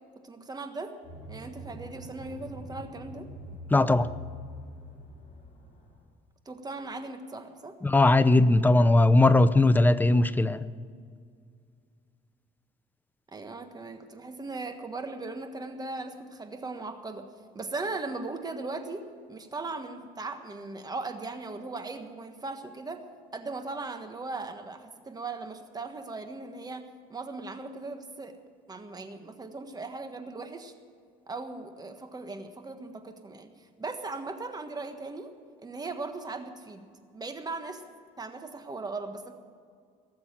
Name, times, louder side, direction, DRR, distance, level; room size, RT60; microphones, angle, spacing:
voice 1, 0.1-0.9 1.3-3.3 6.4-7.8 13.3-17.3 17.5-23.0 23.3-28.4 28.7-30.7 31.3-35.3 35.6-36.9 37.1-37.8 38.2-39.3, right 3 dB, 25° right, 1.4 m, -38 dB
sound 1, 1.0-6.1, equal, 45° left, 4.7 m, -44 dB
voice 2, 3.7-4.1 7.8-10.7, left 2 dB, 10° left, 0.6 m, -20 dB
18.0 x 7.5 x 9.0 m
cardioid pair, 110°, 17 cm